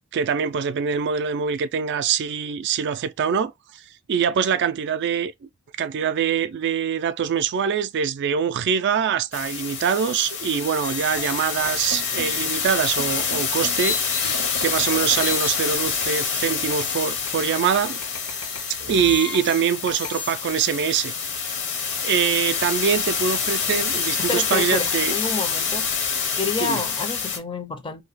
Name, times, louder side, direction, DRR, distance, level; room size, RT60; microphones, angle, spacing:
voice 1, 0.1-3.8 4.1-5.3 5.8-18.0 18.8-21.1 22.0-25.1 26.6-26.8, right 7 dB, 55° right, 0.3 m, -24 dB
sound 1, 9.3-27.4, left 6 dB, 55° left, 0.8 m, -27 dB
sound 2, 10.8-20.3, left 4 dB, 90° left, 1.3 m, -35 dB
voice 2, 24.2-25.9 26.4-28.0, left 4 dB, 25° left, 0.5 m, -29 dB
2.7 x 2.2 x 4.0 m
head